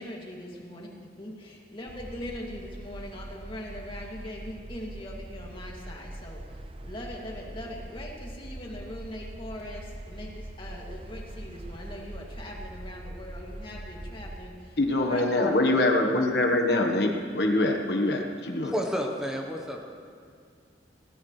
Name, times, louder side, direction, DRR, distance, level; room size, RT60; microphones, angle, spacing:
voice 1, 0.0-15.8, left 1 dB, 30° left, -2 dB, 2.5 m, -41 dB
sound 1, 1.9-14.5, right 1 dB, 30° right, 0.7 m, -42 dB
voice 2, 14.8-18.7, left 2 dB, 65° left, 3 dB, 1.3 m, -24 dB
voice 3, 18.6-19.8, equal, 5° right, 0 dB, 1.1 m, -30 dB
21.5 x 18.5 x 3.3 m, 2.3 s
head